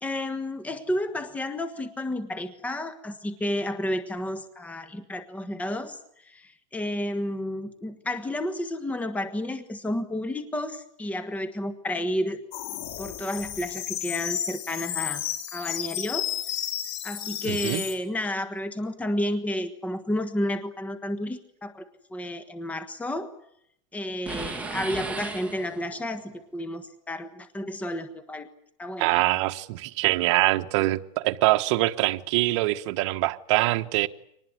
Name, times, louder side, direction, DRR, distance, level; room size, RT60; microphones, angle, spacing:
voice 1, 0.0-12.4 13.0-15.2 15.5-16.3 17.0-23.3 23.9-28.5 28.8-29.1, left 1 dB, 10° left, 1.4 m, -31 dB
sound 1, 12.5-18.0, left 11 dB, 55° left, 4.2 m, -32 dB
voice 2, 17.4-17.8 29.0-34.1, right 18 dB, 60° right, 1.3 m, -24 dB
sound 2, 24.3-26.1, right 4 dB, 10° right, 2.4 m, -35 dB
24.5 x 19.5 x 9.6 m
supercardioid pair, 145°, 17 cm